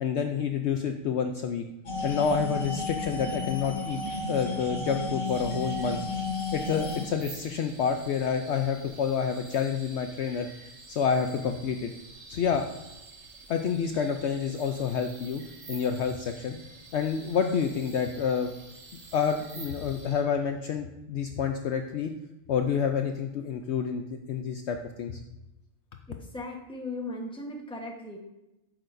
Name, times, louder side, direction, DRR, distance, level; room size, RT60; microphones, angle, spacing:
voice 1, 0.0-1.6 2.0-4.0 4.3-6.0 6.5-10.5 10.9-11.9 12.3-12.7 13.5-15.4 15.7-16.6 16.9-18.5 19.1-22.1 22.5-25.2, left 7 dB, 65° left, 5 dB, 0.8 m, -28 dB
sound 1, 1.9-7.1, left 2 dB, 80° left, 2.2 m, -32 dB
sound 2, 5.2-20.2, right 3 dB, 55° right, 1.3 m, -49 dB
voice 2, 26.1-28.2, left 2 dB, 5° left, 0 dB, 1.0 m, -37 dB
12.5 x 6.0 x 2.6 m, 0.93 s
omnidirectional pair, 1.4 m